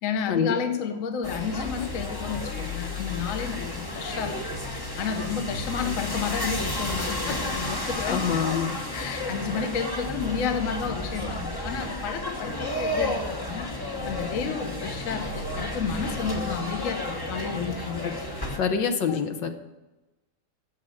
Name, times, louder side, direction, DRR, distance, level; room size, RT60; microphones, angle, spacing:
voice 1, 0.0-4.4 5.0-18.0 19.1-19.2, left 6 dB, 50° left, 7 dB, 1.1 m, -31 dB
sound 1, 1.2-18.6, left 1 dB, 20° left, 0.7 m, -32 dB
voice 2, 7.1-8.8 18.0-18.1 18.6-19.5, left 7 dB, 70° left, 7 dB, 1.6 m, -27 dB
9.3 x 7.4 x 7.8 m, 1.1 s
omnidirectional pair, 2.1 m